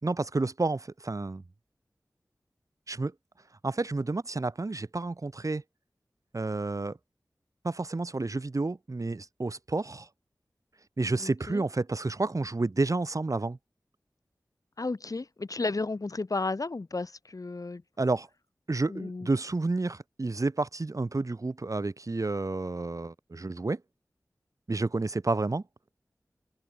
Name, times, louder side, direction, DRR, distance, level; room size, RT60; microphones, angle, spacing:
voice 1, 0.0-1.4 2.9-3.1 3.6-5.6 6.3-7.0 7.6-10.1 11.0-13.6 18.0-18.3 18.7-23.8 24.7-25.6, right 3 dB, 55° right, 4.3 m, -30 dB
voice 2, 11.2-11.6 14.8-17.8 18.9-19.3, left 3 dB, 60° left, 5.3 m, -33 dB
open air
cardioid pair, 40°, 7 cm